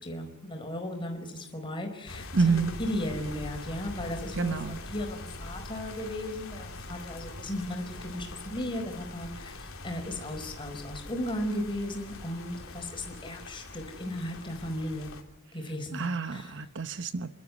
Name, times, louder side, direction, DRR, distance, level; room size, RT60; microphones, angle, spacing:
voice 1, 0.0-15.1 15.5-16.0 16.3-16.5, left 1 dB, 20° left, 3 dB, 4.7 m, -36 dB
sound 1, 2.1-15.2, left 2 dB, 65° left, 3.4 m, -43 dB
voice 2, 2.3-2.7 4.3-4.8 15.9-17.3, right 4 dB, 55° right, 11 dB, 1.0 m, -28 dB
28.5 x 12.5 x 9.7 m, 0.87 s
head